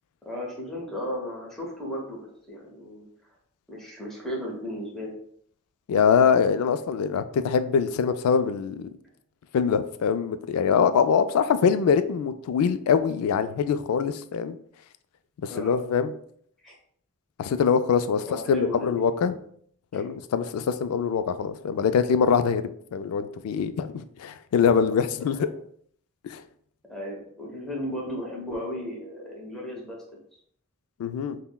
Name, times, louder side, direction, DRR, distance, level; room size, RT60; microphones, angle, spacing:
voice 1, 0.2-3.0 3.7-5.2 15.5-15.8 16.6-16.7 18.2-19.3 19.9-20.1 25.2-25.4 26.9-30.2, equal, ahead, -4 dB, 0.9 m, -35 dB
voice 2, 5.9-8.9 9.5-14.6 15.4-16.1 17.4-19.4 19.9-25.5 26.3-26.4 31.0-31.4, left 6 dB, 80° left, 14 dB, 0.3 m, -23 dB
5.6 x 2.1 x 2.2 m, 0.63 s
head